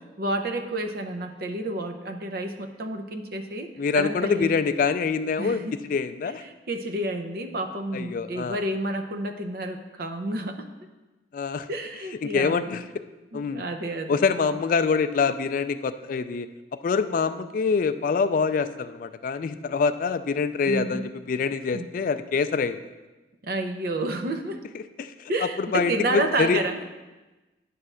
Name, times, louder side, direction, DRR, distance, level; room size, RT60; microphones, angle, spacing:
voice 1, 0.2-4.5 5.4-5.7 6.2-10.7 11.7-12.7 13.3-14.2 20.7-21.1 21.7-21.9 23.4-24.6 25.3-26.9, right 1 dB, 60° right, 5 dB, 0.7 m, -30 dB
voice 2, 3.8-5.6 5.9-6.4 7.9-8.6 11.3-11.7 12.2-12.8 13.3-13.6 14.1-16.5 16.8-22.9 25.0-26.6, left 5 dB, 50° left, 11 dB, 0.3 m, -25 dB
9.3 x 3.3 x 6.1 m, 1.1 s
head